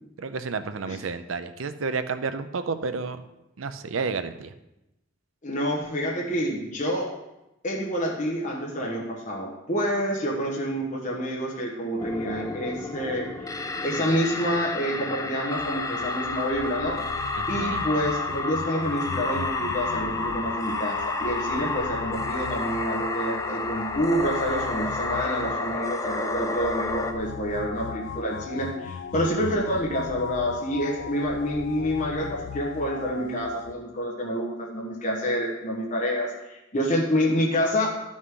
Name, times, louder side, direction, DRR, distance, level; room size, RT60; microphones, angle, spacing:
voice 1, 0.2-3.2 3.6-4.5 17.4-17.9, right 4 dB, 85° right, 11 dB, 0.6 m, -31 dB
voice 2, 5.4-7.1 7.6-17.0 17.5-37.9, equal, 40° left, -2 dB, 1.2 m, -28 dB
sound 1, 12.0-27.1, left 2 dB, 15° left, 0.5 m, -31 dB
sound 2, 15.6-33.7, left 7 dB, 65° left, 0.3 m, -37 dB
12.5 x 6.3 x 3.7 m, 0.95 s
head